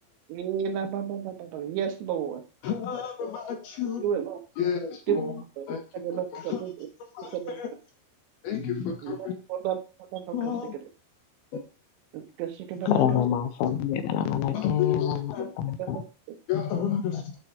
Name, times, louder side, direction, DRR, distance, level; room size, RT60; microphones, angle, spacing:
voice 1, 0.3-2.4 4.0-4.4 5.1-5.2 5.6-5.7 5.9-6.9 7.3-7.5 9.0-10.9 12.1-13.2 15.9-16.4, right 8 dB, 75° right, 5 dB, 3.3 m, -32 dB
voice 2, 2.6-4.0 4.6-5.3 5.7-5.8 6.1-6.6 7.1-7.7 8.4-9.4 10.3-10.7 12.8-13.2 14.5-15.5 16.5-17.4, left 8 dB, 70° left, 4 dB, 2.6 m, -30 dB
voice 3, 12.9-16.0, left 9 dB, 90° left, 8 dB, 3.2 m, -27 dB
8.8 x 4.1 x 4.5 m, 0.33 s
omnidirectional pair, 5.3 m